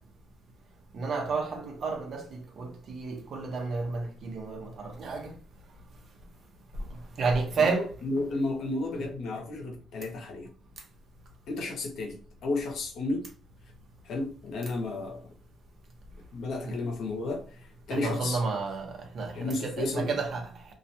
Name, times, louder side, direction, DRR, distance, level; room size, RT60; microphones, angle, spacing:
voice 1, 0.9-5.3 7.2-7.9 16.7-16.8 17.9-20.5, right 4 dB, 60° right, 0.8 m, -31 dB
voice 2, 7.6-10.5 11.5-13.3 14.0-15.3 16.3-18.4 19.3-20.2, left 2 dB, 70° left, 0.7 m, -33 dB
2.4 x 2.2 x 2.7 m
cardioid pair, 90°, 0 cm